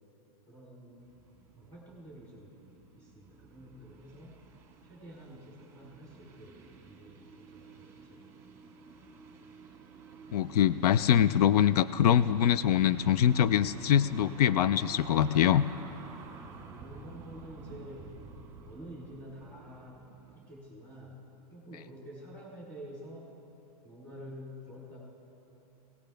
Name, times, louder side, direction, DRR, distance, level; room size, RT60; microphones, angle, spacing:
voice 1, 0.5-1.2 1.5-4.4 4.8-8.2 16.4-18.1 18.6-20.0 20.3-21.3 21.5-23.3 23.8-25.0, equal, 5° left, -6 dB, 3.7 m, -49 dB
sound 1, 1.0-20.6, right 5 dB, 15° right, 1.4 m, -51 dB
voice 2, 10.3-15.7, left 10 dB, 90° left, 15 dB, 0.5 m, -24 dB
23.0 x 18.0 x 3.4 m, 3.0 s
supercardioid pair, 165°, 19 cm